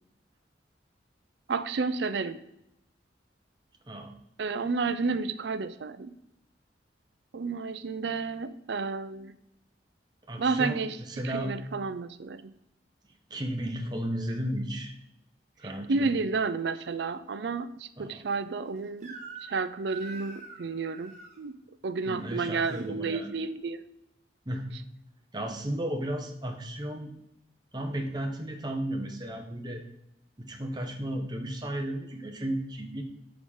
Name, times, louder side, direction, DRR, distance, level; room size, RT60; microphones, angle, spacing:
voice 1, 1.5-2.4 4.4-6.1 7.3-9.3 10.4-11.0 11.2-12.5 15.6-19.1 19.4-21.1 21.4-21.5 21.8-23.8, right 4 dB, 75° right, 13 dB, 0.5 m, -31 dB
voice 2, 3.9-4.2 10.3-11.5 13.3-14.9 15.6-16.1 18.0-18.2 22.1-23.3 24.5-24.7 25.3-27.1 27.7-29.8 30.4-33.0, right 1 dB, 25° right, 3 dB, 0.8 m, -34 dB
Crying sobbing / Screech, 19.0-19.6 19.9-21.4 22.2-22.9, right 4 dB, 40° right, 1.1 m, -45 dB
5.2 x 4.9 x 5.4 m, 0.82 s
head